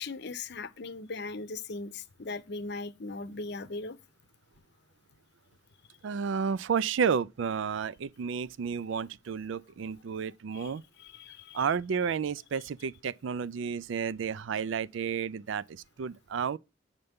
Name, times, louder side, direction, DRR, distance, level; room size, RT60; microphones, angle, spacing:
voice 1, 0.0-4.0 10.5-10.7 11.0-11.7, left 3 dB, 55° left, 0.7 m, -39 dB
voice 2, 6.0-10.8 11.5-16.6, right 6 dB, 75° right, 0.4 m, -31 dB
7.9 x 6.6 x 3.6 m
head